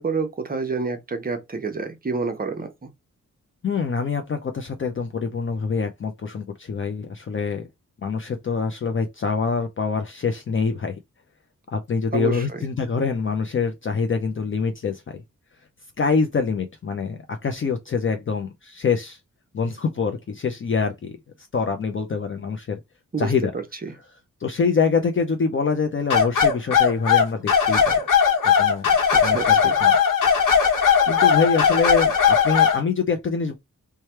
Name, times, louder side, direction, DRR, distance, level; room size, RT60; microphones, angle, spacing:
voice 1, 0.0-2.9 12.1-12.6 23.1-23.9 29.1-29.8, right 4 dB, 30° right, 0.8 m, -29 dB
voice 2, 3.6-7.6 8.0-11.0 11.7-15.2 16.0-19.2 19.5-21.2 21.5-22.8 23.2-23.5 24.4-27.8 28.4-28.9 29.2-30.0 31.1-33.6, left 5 dB, 40° left, 0.5 m, -25 dB
sound 1, 26.1-32.8, left 7 dB, 80° left, 1.2 m, -18 dB
3.2 x 2.2 x 4.3 m
wide cardioid pair, 175°, 32 cm